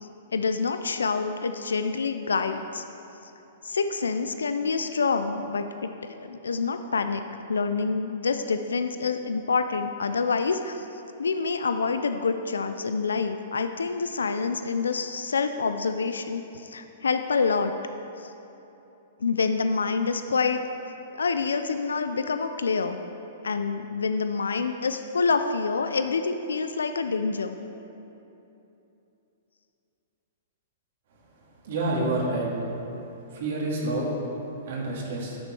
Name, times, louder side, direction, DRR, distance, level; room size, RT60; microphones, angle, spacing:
voice 1, 0.3-2.8 3.6-7.2 7.5-10.9 11.2-17.7 18.2-18.3 19.2-20.6 21.1-23.0 23.4-27.6, left 4 dB, 85° left, 8 dB, 0.4 m, -27 dB
voice 2, 31.6-32.5 33.3-34.1 34.7-35.4, right 2 dB, 65° right, -3 dB, 2.2 m, -28 dB
10.5 x 6.1 x 4.6 m, 2.9 s
hypercardioid pair, 115°, 0 cm